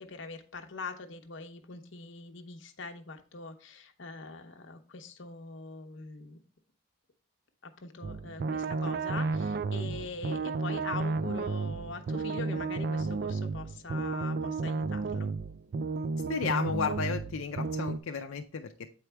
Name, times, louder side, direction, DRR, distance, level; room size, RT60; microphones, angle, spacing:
voice 1, 0.0-6.4 7.6-15.3, left 4 dB, 65° left, 6 dB, 0.8 m, -43 dB
sound 1, 8.0-18.0, right 4 dB, 50° right, 0.3 m, -32 dB
voice 2, 16.3-18.9, left 5 dB, 90° left, 4 dB, 0.5 m, -33 dB
8.0 x 4.7 x 3.3 m, 0.39 s
head